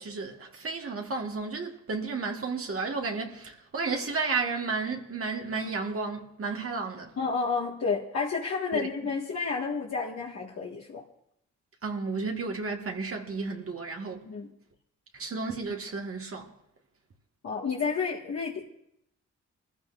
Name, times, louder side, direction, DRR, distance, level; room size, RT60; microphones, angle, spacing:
voice 1, 0.0-7.2 8.7-8.9 11.8-14.2 15.1-16.5, right 4 dB, 50° right, 1.6 m, -32 dB
voice 2, 7.2-11.0 14.3-14.5 17.4-18.7, left 5 dB, 60° left, 1.7 m, -30 dB
22.5 x 14.5 x 2.5 m
cardioid pair, 60°, 30 cm